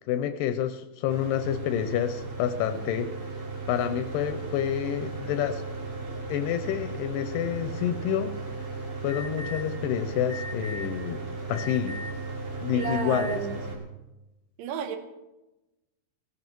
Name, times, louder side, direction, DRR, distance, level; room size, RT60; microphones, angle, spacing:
voice 1, 0.1-3.1 3.7-5.6 6.3-8.4 9.0-11.2 11.5-12.0 12.6-13.4, left 10 dB, 85° left, 10 dB, 2.3 m, -28 dB
Mechanical fan, 1.1-13.8, right 3 dB, 55° right, 3.0 m, -36 dB
Alarm, 9.1-9.6 10.3-10.9 11.5-12.2 12.8-13.4, left 2 dB, 40° right, 3.8 m, -38 dB
voice 2, 12.7-13.6 14.6-15.0, right 7 dB, 80° right, 8 dB, 2.6 m, -31 dB
18.5 x 14.5 x 3.0 m, 1.0 s
omnidirectional pair, 4.0 m